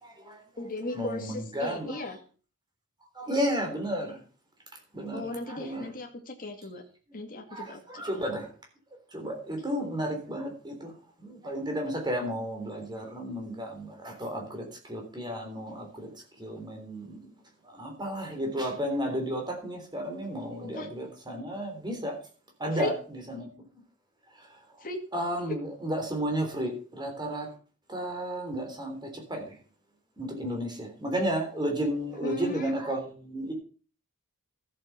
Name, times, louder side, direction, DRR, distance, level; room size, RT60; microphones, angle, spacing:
voice 1, 0.0-0.4 0.9-2.0 3.2-4.2 4.9-5.2 5.5-5.8 7.5-8.5 9.1-10.9 11.2-16.1 16.4-17.2 17.6-22.2 22.6-23.5 24.4-24.5 25.1-27.5 27.9-29.5 30.2-33.5, equal, 20° right, 3.6 m, -33 dB
voice 2, 0.6-2.2 5.1-6.8 7.1-8.0 20.7-20.9 22.7-23.0 24.8-25.0 32.2-32.7, left 2 dB, 40° left, 2.1 m, -37 dB
13.5 x 7.6 x 5.8 m
head